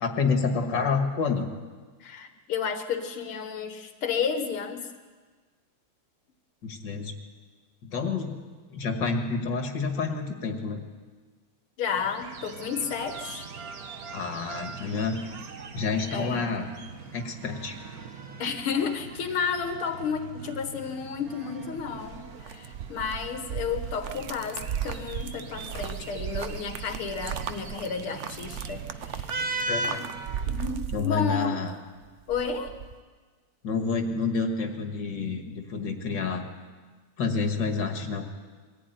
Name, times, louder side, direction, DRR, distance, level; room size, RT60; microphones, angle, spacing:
voice 1, 0.0-1.5 6.6-7.1 7.8-8.4 8.7-10.8 14.1-15.2 15.7-16.7 17.1-17.8 29.6-30.0 30.9-31.7 33.6-36.5 37.2-38.3, left 4 dB, 55° left, 4 dB, 2.6 m, -28 dB
voice 2, 2.0-4.9 11.8-13.5 16.1-16.5 18.4-29.4 29.9-30.1 30.5-31.6 32.3-32.7, left 6 dB, 85° left, 6 dB, 2.3 m, -32 dB
sound 1, 12.0-30.7, right 3 dB, 50° right, 1.5 m, -40 dB
sound 2, 21.8-31.7 32.0-32.9, right 8 dB, 75° right, 0.6 m, -36 dB
23.0 x 15.0 x 9.4 m, 1.5 s
omnidirectional pair, 2.3 m